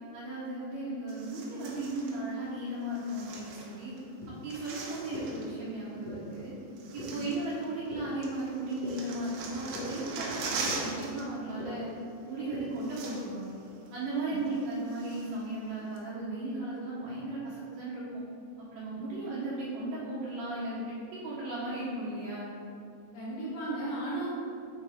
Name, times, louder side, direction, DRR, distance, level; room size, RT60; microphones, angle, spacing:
voice 1, 0.1-3.9 4.3-6.5 6.9-11.9 12.3-13.6 13.9-18.2 18.7-22.5, right 2 dB, 65° right, -10 dB, 2.7 m, -36 dB
sound 1, 1.1-2.2 2.9-4.0 4.3-5.5 6.3-6.4 6.8-7.9 8.2-11.2 11.5-11.7 12.5-12.6 12.8-13.5 13.9-14.0 14.5-15.4 16.0-16.1, right 4 dB, 90° right, 3.2 m, -40 dB
sound 2, 4.2-4.3 5.1-5.2 6.0-6.1 7.0-7.1 7.9-8.0 8.8-8.9 9.7-9.8 10.7-10.8 11.6-11.7 12.5-12.6, left 4 dB, 65° left, 2.2 m, -41 dB
voice 2, 23.1-24.3, right 2 dB, 90° left, -7 dB, 1.9 m, -36 dB
6.4 x 5.6 x 3.5 m, 2.6 s
omnidirectional pair, 5.2 m